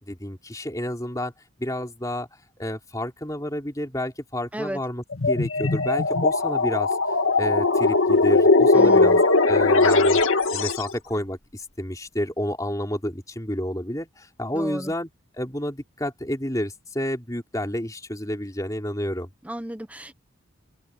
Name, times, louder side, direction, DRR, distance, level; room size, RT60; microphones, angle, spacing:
voice 1, 0.0-1.3 1.6-6.9 7.4-10.2 10.5-15.1 15.4-19.3, left 1 dB, 15° left, 4.1 m, -30 dB
sound 1, 5.1-10.9, left 3 dB, 75° left, 1.9 m, -19 dB
voice 2, 8.7-9.2 14.5-14.9 19.4-20.1, equal, 5° right, 1.1 m, -33 dB
open air
head